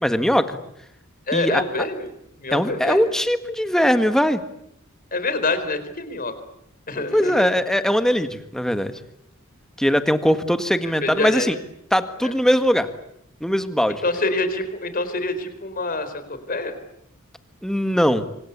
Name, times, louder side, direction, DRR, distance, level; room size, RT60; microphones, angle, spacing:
voice 1, 0.0-0.5 1.3-1.6 2.5-4.4 6.9-9.0 9.8-11.6 11.9-12.9 13.4-14.0 17.6-18.2, equal, ahead, 9 dB, 1.7 m, -20 dB
voice 2, 1.3-2.1 2.4-3.0 5.1-6.3 6.9-7.5 11.0-11.5 12.2-12.3 14.0-16.7, left 2 dB, 40° left, 11 dB, 4.2 m, -26 dB
26.0 x 25.0 x 8.3 m, 0.74 s
head